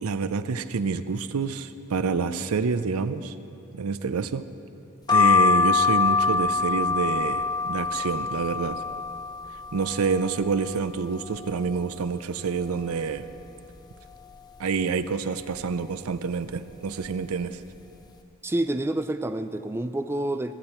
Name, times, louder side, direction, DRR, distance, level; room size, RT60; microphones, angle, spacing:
voice 1, 0.0-3.3 3.7-4.5 5.1-8.8 9.7-13.3 14.6-17.6, right 5 dB, 85° right, 13 dB, 0.5 m, -27 dB
sound 1, 5.1-10.8 11.2-12.0 12.4-12.5 12.6-13.8 14.3-14.6 15.4-15.7 16.5-16.7 17.0-17.2, left 5 dB, 20° left, 0.7 m, -25 dB
voice 2, 18.4-20.5, right 1 dB, 10° right, 9 dB, 0.3 m, -28 dB
21.5 x 8.9 x 4.4 m, 2.8 s
head